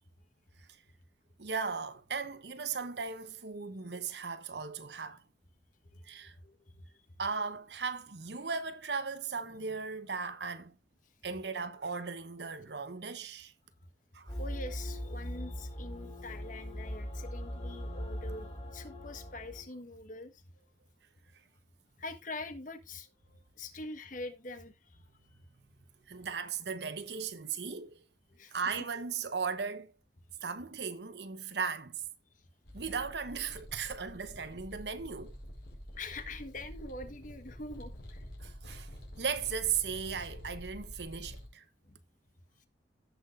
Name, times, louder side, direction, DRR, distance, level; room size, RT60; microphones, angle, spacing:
voice 1, 1.4-5.2 6.0-6.3 7.2-10.8 11.2-13.5 14.1-14.3 26.1-28.0 28.5-29.9 30.4-32.0 32.7-35.4 38.4-38.9 39.2-41.6, right 5 dB, 70° right, 1.0 m, -37 dB
voice 2, 5.8-7.1 14.4-20.7 22.0-25.0 28.3-28.6 36.0-38.3 41.8-42.0 42.6-42.7, left 2 dB, 50° left, 1.3 m, -45 dB
sound 1, 14.3-19.6, equal, 30° left, 3.9 m, -40 dB
sound 2, 32.6-41.5, equal, 65° left, 4.6 m, -48 dB
16.0 x 6.2 x 2.5 m
head